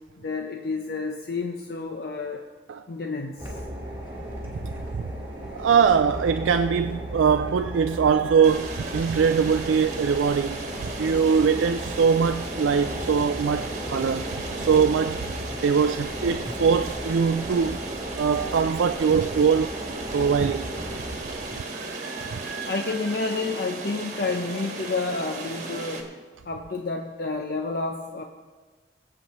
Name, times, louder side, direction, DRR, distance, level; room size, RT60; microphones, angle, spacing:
voice 1, 0.2-2.4 2.9-3.5 22.5-26.1 26.4-28.2, left 3 dB, 55° left, 0.7 m, -30 dB
sound 1, 3.4-21.6, equal, 15° right, 2.8 m, -35 dB
voice 2, 4.6-5.1 5.5-15.3 15.6-17.8 18.2-19.7 20.1-20.7 21.7-22.8, right 6 dB, 85° right, 0.4 m, -22 dB
sound 2, 8.4-26.0, right 2 dB, 40° right, 1.5 m, -36 dB
22.0 x 8.0 x 3.1 m
head